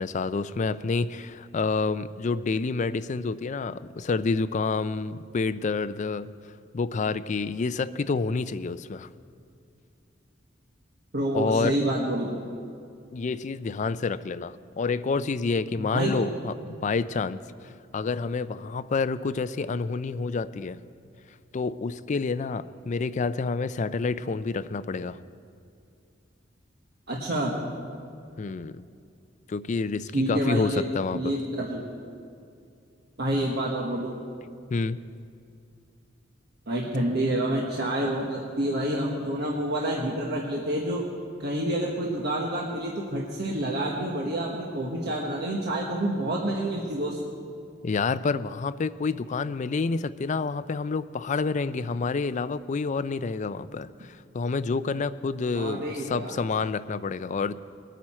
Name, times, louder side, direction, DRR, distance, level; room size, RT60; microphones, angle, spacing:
voice 1, 0.0-6.3 6.7-9.1 11.3-11.8 13.1-17.4 17.9-20.8 21.5-25.2 28.4-28.8 29.5-31.3 34.7-35.0 47.8-57.5, left 4 dB, 40° left, 13 dB, 0.4 m, -28 dB
voice 2, 11.1-12.5 15.8-16.1 27.1-27.5 30.1-31.9 33.2-34.1 36.7-41.0 41.4-47.2 55.5-56.4, right 1 dB, 60° right, -2 dB, 1.3 m, -28 dB
21.5 x 9.2 x 4.3 m, 2.4 s
head